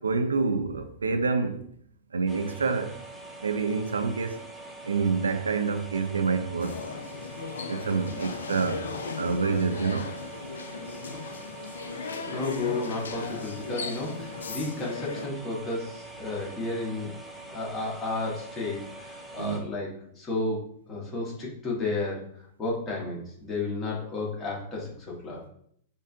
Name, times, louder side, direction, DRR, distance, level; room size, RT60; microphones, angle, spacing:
voice 1, 0.0-1.6 2.1-3.0 3.4-4.4 4.8-6.8 7.7-8.9 9.2-10.1 19.4-19.6, right 4 dB, 75° right, 0.3 m, -27 dB
sound 1, 2.3-19.6, right 2 dB, 10° right, 1.0 m, -44 dB
sound 2, 6.6-15.3, left 4 dB, 70° left, 0.4 m, -37 dB
voice 2, 12.3-17.1 17.5-19.9 20.2-20.6 20.9-22.2 22.6-25.4, left 3 dB, 20° left, 1.4 m, -32 dB
5.1 x 2.6 x 2.3 m
figure-of-eight pair, 100°, 0 cm